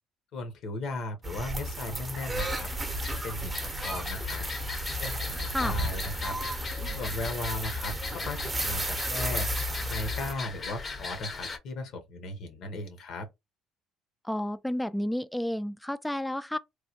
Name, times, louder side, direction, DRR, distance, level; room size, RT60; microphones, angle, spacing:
voice 1, 0.3-2.7 3.1-4.4 5.0-6.4 7.0-9.5 9.9-13.3, left 2 dB, 65° left, 0.9 m, -37 dB
sound 1, 1.2-10.3, right 1 dB, 20° right, 0.7 m, -33 dB
sound 2, 2.3-11.6, left 4 dB, 35° left, 0.7 m, -39 dB
voice 2, 14.2-16.6, left 1 dB, 5° left, 0.3 m, -31 dB
3.1 x 2.1 x 2.8 m
supercardioid pair, 85°, 0 cm